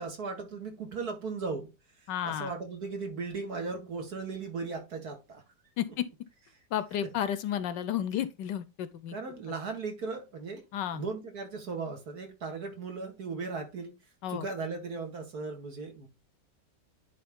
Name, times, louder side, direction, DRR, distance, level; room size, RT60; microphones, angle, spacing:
voice 1, 0.0-1.7 2.2-5.4 7.0-7.1 9.1-10.6 10.9-13.9 14.3-16.1, right 4 dB, 55° right, 2.4 m, -37 dB
voice 2, 2.1-2.5 5.8-6.1 6.7-9.2 10.7-11.0 14.2-14.5, left 10 dB, 75° left, 1.3 m, -32 dB
10.5 x 3.5 x 3.6 m
omnidirectional pair, 2.0 m